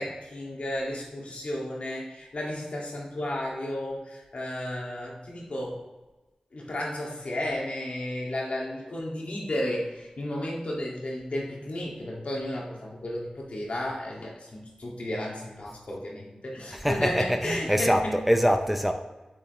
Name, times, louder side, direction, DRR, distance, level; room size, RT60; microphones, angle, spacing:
voice 1, 0.0-5.8 6.5-18.1, left 1 dB, 65° left, -2 dB, 2.0 m, -33 dB
voice 2, 16.7-18.9, equal, 5° right, 6 dB, 0.6 m, -24 dB
7.0 x 7.0 x 3.2 m, 1.1 s
cardioid pair, 45°, 2 cm